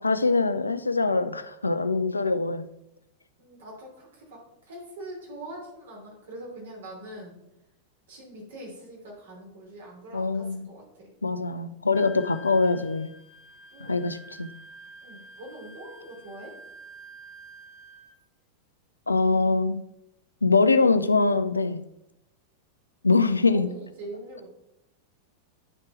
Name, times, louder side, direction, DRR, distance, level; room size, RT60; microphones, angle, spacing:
voice 1, 0.0-2.7 10.1-10.7 11.2-13.1 13.9-14.5 19.1-19.8 20.4-21.8 23.0-23.7, left 3 dB, 80° left, 11 dB, 0.5 m, -23 dB
voice 2, 3.4-7.4 8.1-11.1 13.7-14.2 15.0-16.6 23.1-24.5, right 1 dB, 60° right, -1 dB, 3.0 m, -43 dB
Wind instrument woodwind instrument, 11.9-18.2, right 1 dB, 25° left, 0.9 m, -48 dB
9.9 x 4.4 x 4.5 m, 0.85 s
figure-of-eight pair, 90°, 0 cm